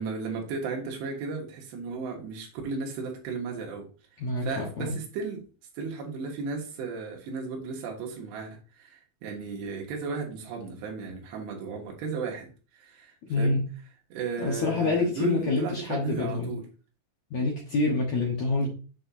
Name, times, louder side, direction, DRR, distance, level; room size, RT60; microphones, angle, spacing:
voice 1, 0.0-3.9 4.4-5.4 5.8-13.6 14.1-16.7 18.6-18.7, right 4 dB, 70° right, 3.5 m, -35 dB
voice 2, 4.2-4.9 13.3-13.6 14.4-16.5 17.3-18.7, left 3 dB, 80° left, 1.6 m, -27 dB
8.0 x 6.5 x 2.7 m
omnidirectional pair, 5.4 m